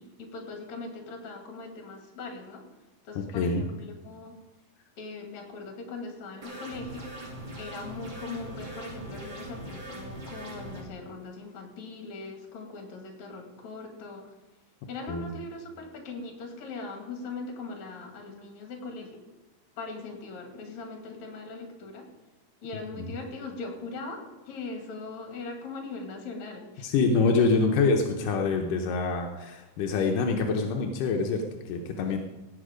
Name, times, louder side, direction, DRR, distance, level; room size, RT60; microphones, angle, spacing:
voice 1, 0.0-2.6 3.0-4.3 5.0-7.1 7.6-14.3 14.9-19.2 19.8-22.1 22.6-26.9, left 3 dB, 65° left, 3 dB, 3.3 m, -40 dB
voice 2, 3.2-3.6 15.1-15.3 23.0-23.1 26.8-32.2, left 4 dB, 85° left, 2 dB, 2.5 m, -26 dB
sound 1, 6.4-10.8, right 1 dB, 40° right, 3.1 m, -41 dB
17.5 x 7.8 x 5.1 m, 1.1 s
omnidirectional pair, 3.6 m